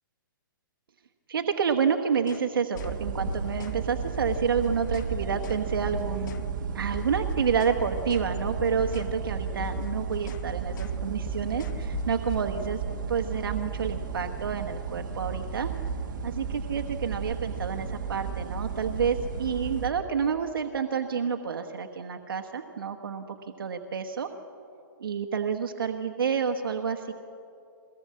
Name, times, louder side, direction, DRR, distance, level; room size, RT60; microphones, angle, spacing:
voice 1, 1.3-6.5 6.7-15.7 16.2-24.3 25.0-27.1, right 6 dB, 85° right, 5 dB, 1.2 m, -29 dB
sound 1, 2.2-2.5 2.8-3.0 3.3-3.8 4.2-5.1 5.4-5.7 5.9-6.5 6.9-7.8 8.1-8.3 8.6-9.2 9.4-10.5 10.8-11.0 11.3-12.8, left 8 dB, 60° left, 0.9 m, -40 dB
sound 2, 2.7-19.9, right 6 dB, 60° right, 1.5 m, -33 dB
22.0 x 18.0 x 7.6 m, 2.7 s
hypercardioid pair, 150°, 12 cm